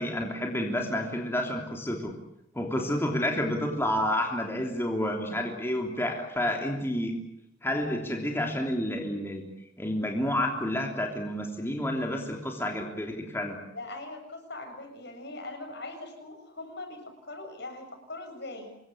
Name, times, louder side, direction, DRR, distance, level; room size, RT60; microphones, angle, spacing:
voice 1, 0.0-2.1 2.5-7.1 7.6-9.4 9.8-13.6, left 1 dB, 10° left, 1 dB, 3.3 m, -30 dB
voice 2, 13.7-18.7, left 2 dB, 60° left, 5 dB, 7.4 m, -41 dB
26.5 x 22.0 x 8.6 m, 0.84 s
head